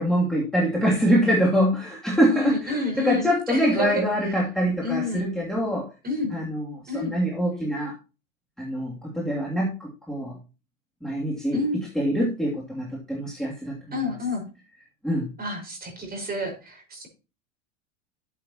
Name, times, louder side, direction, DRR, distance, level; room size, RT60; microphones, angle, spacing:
voice 1, 0.0-5.9 6.3-7.9 8.6-10.4 11.0-11.6 11.9-14.0 15.0-15.3, equal, ahead, -5 dB, 2.9 m, -24 dB
voice 2, 2.2-4.0 4.8-5.2 6.0-6.3 6.9-7.1 11.5-11.8 13.9-14.4 15.4-17.1, left 2 dB, 25° right, 2 dB, 5.3 m, -29 dB
12.5 x 7.5 x 3.0 m, 0.32 s
hypercardioid pair, 95°, 39 cm